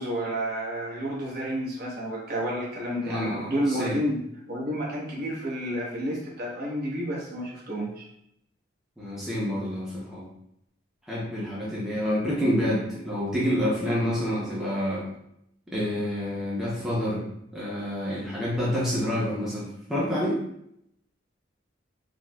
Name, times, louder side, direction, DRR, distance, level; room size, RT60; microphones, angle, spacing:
voice 1, 0.0-4.2 4.5-8.0, equal, 50° right, -5 dB, 1.0 m, -30 dB
voice 2, 3.0-4.0 9.0-10.3 11.1-15.1 15.7-17.2 17.5-20.4, equal, ahead, -7 dB, 0.6 m, -28 dB
4.4 x 2.1 x 2.2 m, 0.75 s
head